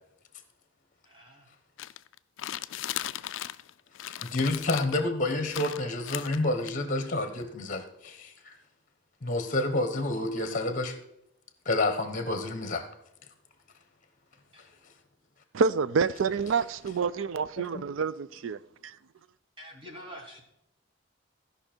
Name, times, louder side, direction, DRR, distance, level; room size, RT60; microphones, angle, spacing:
voice 1, 1.0-1.5 14.5-14.7 19.6-20.4, equal, 25° right, 1.3 m, -46 dB
sound 1, 1.8-3.7 3.9-5.0 5.5-6.7, left 13 dB, 70° left, 0.3 m, -37 dB
voice 2, 2.8-3.3 4.2-8.5 9.2-11.0 11.6-12.8 17.7-17.8, left 2 dB, 40° left, 1.0 m, -29 dB
voice 3, 15.5-19.0, right 5 dB, 75° right, 0.4 m, -28 dB
14.5 x 5.5 x 4.4 m
head